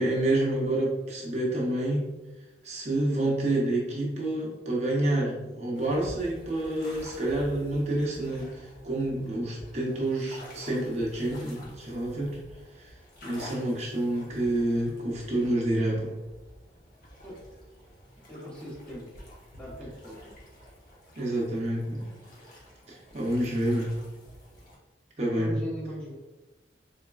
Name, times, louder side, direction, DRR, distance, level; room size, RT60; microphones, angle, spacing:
voice 1, 0.0-2.1 2.6-12.4 12.7-12.9 13.2-16.2 21.2-22.1 22.9-24.0 25.2-25.5, right 1 dB, 40° right, -3 dB, 0.7 m, -28 dB
sound 1, 5.7-24.7, equal, 55° left, 1.0 m, -49 dB
voice 2, 18.3-19.1 19.5-20.4 25.3-26.1, equal, 5° left, -5 dB, 1.0 m, -38 dB
3.8 x 3.5 x 2.3 m, 1.1 s
head